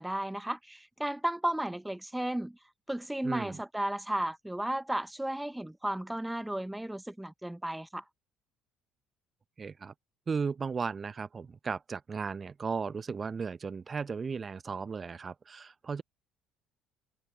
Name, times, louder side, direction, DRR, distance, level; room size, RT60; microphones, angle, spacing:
voice 1, 0.0-2.6 2.9-8.0, right 1 dB, 5° right, 1.1 m, -34 dB
voice 2, 3.2-3.6 9.6-9.9 10.3-16.0, right 5 dB, 30° right, 0.8 m, -35 dB
figure-of-eight pair, 55°, 0 cm